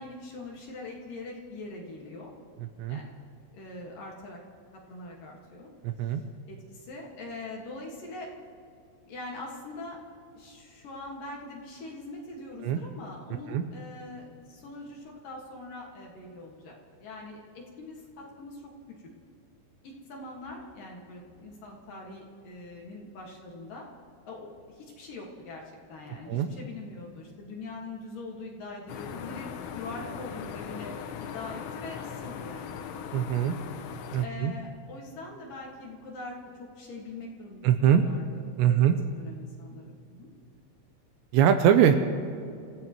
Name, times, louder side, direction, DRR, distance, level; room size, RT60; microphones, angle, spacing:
voice 1, 0.0-2.3 2.9-3.1 3.5-4.4 4.9-5.7 6.1-6.2 6.5-8.3 9.0-10.0 10.3-16.7 17.0-18.7 19.0-19.1 19.8-23.9 24.2-25.6 25.9-29.5 29.7-30.9 31.2-33.0 34.2-38.9 39.2-40.3, left 2 dB, 55° left, -2 dB, 2.9 m, -42 dB
voice 2, 2.6-3.0 5.8-6.2 12.6-12.8 13.5-13.6 26.3-26.5 33.1-33.6 34.1-34.5 37.6-38.0 38.6-39.0 41.3-42.0, right 9 dB, 85° right, 7 dB, 2.7 m, -22 dB
sound 1, 28.9-34.3, left 7 dB, 90° left, 3.5 m, -39 dB
27.5 x 15.5 x 3.0 m, 2.5 s
omnidirectional pair, 5.5 m